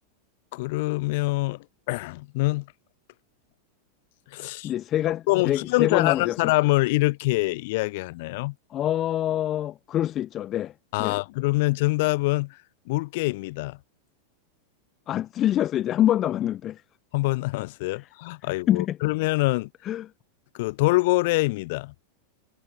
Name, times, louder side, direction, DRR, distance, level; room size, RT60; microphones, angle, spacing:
voice 1, 0.5-2.7 4.3-4.7 5.3-8.5 10.9-12.6 12.9-13.8 17.1-19.7 20.5-21.9, left 22 dB, 50° left, 1.5 m, -25 dB
voice 2, 4.6-6.4 8.7-10.7 11.0-11.2 15.1-16.8 18.7-19.0 19.8-20.1, left 12 dB, 30° left, 0.6 m, -25 dB
figure-of-eight pair, 90°, 0 cm